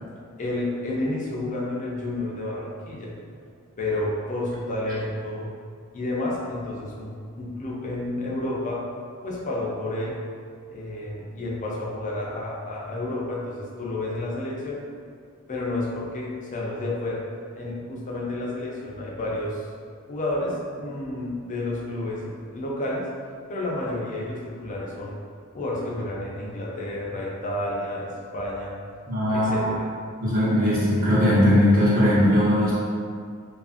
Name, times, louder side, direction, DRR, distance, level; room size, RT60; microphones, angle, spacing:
voice 1, 0.4-3.1 3.8-5.5 5.9-8.8 9.2-10.2 10.7-14.8 15.5-17.2 17.5-19.7 20.1-23.1 23.5-25.2 25.5-28.8 29.3-29.9, left 1 dB, 35° left, -3 dB, 0.4 m, -30 dB
voice 2, 29.1-29.7 30.2-32.7, left 1 dB, 40° right, -8 dB, 0.7 m, -19 dB
2.6 x 2.4 x 2.4 m, 2.2 s
head